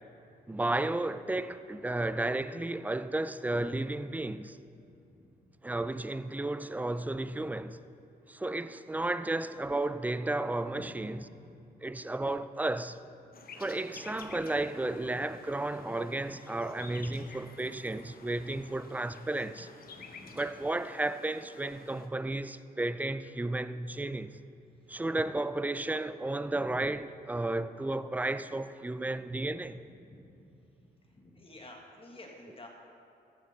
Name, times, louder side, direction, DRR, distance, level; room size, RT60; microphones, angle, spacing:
voice 1, 0.5-4.6 5.6-7.8 8.3-11.2 11.8-13.0 13.6-19.7 20.3-24.4 24.9-29.8, right 2 dB, 10° right, 0.4 m, -33 dB
voice 2, 4.9-5.3 10.7-10.9 11.3-11.7 14.2-14.4 14.9-15.2 15.8-15.9 17.6-17.7 19.9-20.4 30.0-30.5 30.8-32.7, left 1 dB, 35° left, 1.8 m, -53 dB
sound 1, 13.3-22.1, left 5 dB, 60° left, 1.0 m, -52 dB
14.5 x 7.3 x 4.1 m
cardioid pair, 75°, 17 cm